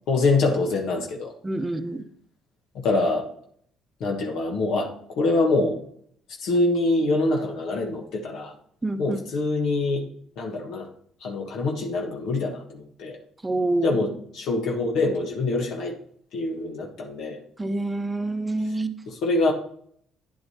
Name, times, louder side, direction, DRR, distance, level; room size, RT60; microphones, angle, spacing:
voice 1, 0.1-1.3 2.8-3.3 4.0-5.8 6.4-8.5 9.0-10.0 10.4-10.9 11.2-13.2 13.8-15.9 16.3-17.4 18.6-18.7 19.1-19.5, left 2 dB, 70° left, 2 dB, 1.4 m, -25 dB
voice 2, 1.4-2.0 8.8-9.2 13.4-14.0 17.6-19.0, right 2 dB, 20° right, 10 dB, 0.8 m, -27 dB
9.5 x 7.8 x 2.9 m, 0.64 s
hypercardioid pair, 60°, 0 cm